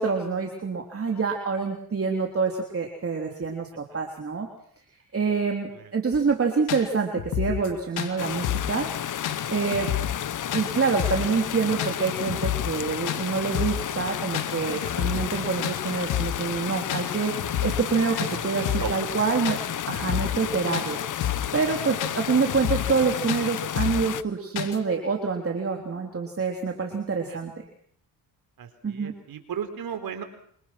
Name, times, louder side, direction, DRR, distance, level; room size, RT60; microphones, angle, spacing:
voice 1, 0.0-4.5 5.1-8.9 9.5-9.9 10.5-19.6 19.9-21.2 21.5-27.7 28.8-29.1, right 5 dB, 35° right, 2 dB, 3.6 m, -26 dB
sound 1, 6.1-6.2 6.7-6.8 7.2-7.7 8.0-8.1 8.4-8.7 9.2-9.4 9.7-10.2 10.5-10.7 11.0-11.3 11.8-11.9 12.3-12.8 13.1-13.2 13.5-13.9 14.3-14.6 14.8-15.4 15.6-15.8 16.1-16.4 16.9-17.0 17.4-17.9 18.2-18.3 18.6-19.0 19.4-19.6 19.9-20.5 20.7-20.9 21.2-21.5 22.0-22.1 22.5-23.0 23.3-23.4 23.8-24.1 24.6-24.8, left 11 dB, 85° left, 3.0 m, -29 dB
sound 2, 8.2-24.2, left 10 dB, 55° left, 1.0 m, -32 dB
voice 2, 28.6-30.2, right 8 dB, 70° right, 9 dB, 4.5 m, -35 dB
26.5 x 26.5 x 6.1 m, 0.65 s
cardioid pair, 75°, 37 cm